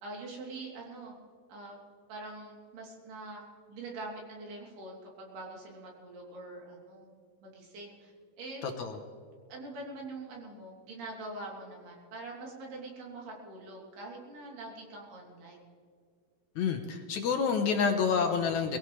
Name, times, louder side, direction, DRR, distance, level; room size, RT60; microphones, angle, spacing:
voice 1, 0.0-1.1 1.5-1.8 2.1-3.4 3.7-8.1 8.4-8.6 9.5-15.7, right 2 dB, 75° right, -2 dB, 5.1 m, -44 dB
voice 2, 8.6-9.0 16.6-18.8, left 6 dB, 70° left, 4 dB, 1.8 m, -28 dB
22.0 x 16.0 x 3.3 m, 2.2 s
omnidirectional pair, 4.7 m